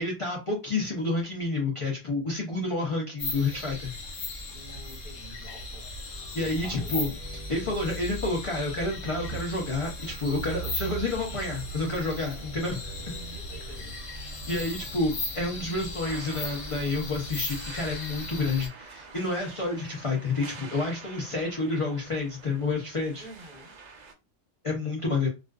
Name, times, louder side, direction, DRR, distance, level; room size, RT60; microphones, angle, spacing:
voice 1, 0.0-3.9 6.3-7.1 7.5-13.1 14.2-23.3 24.6-25.3, left 2 dB, 45° left, 0.4 m, -29 dB
sound 1, 3.2-18.7, left 2 dB, 85° left, 1.1 m, -38 dB
voice 2, 4.5-5.9 6.4-7.0 13.1-14.0 23.2-23.7, equal, 25° right, 0.9 m, -48 dB
sound 2, 5.5-16.5, right 3 dB, 65° right, 0.9 m, -42 dB
sound 3, 16.0-24.1, right 4 dB, 80° right, 0.3 m, -47 dB
2.4 x 2.3 x 2.2 m
omnidirectional pair, 1.3 m